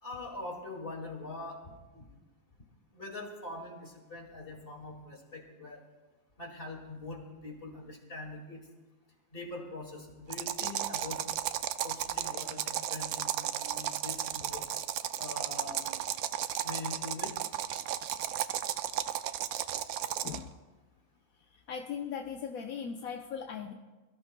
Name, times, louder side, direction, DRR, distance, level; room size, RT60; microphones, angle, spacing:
voice 1, 0.0-2.1 2.9-5.8 6.4-8.6 9.3-11.2 11.8-14.6 15.2-15.8 16.6-17.3, left 2 dB, 40° left, 0 dB, 2.5 m, -43 dB
sound 1, 10.3-20.5, right 11 dB, 85° right, 1.1 m, -34 dB
voice 2, 21.5-23.7, left 7 dB, 80° left, 3 dB, 1.2 m, -39 dB
24.5 x 14.5 x 2.2 m, 1.2 s
omnidirectional pair, 1.5 m